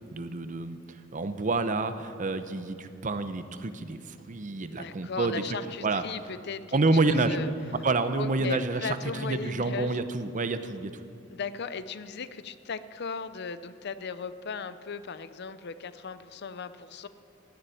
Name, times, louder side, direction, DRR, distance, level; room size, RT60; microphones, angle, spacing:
voice 1, 0.0-5.4 5.8-6.0 6.7-7.4 7.8-9.0 9.2-10.9, right 3 dB, 40° right, 10 dB, 0.7 m, -28 dB
voice 2, 4.7-6.8 7.1-7.5 8.2-10.0 11.3-17.1, left 5 dB, 55° left, 13 dB, 0.6 m, -37 dB
16.5 x 7.2 x 9.9 m, 2.6 s
head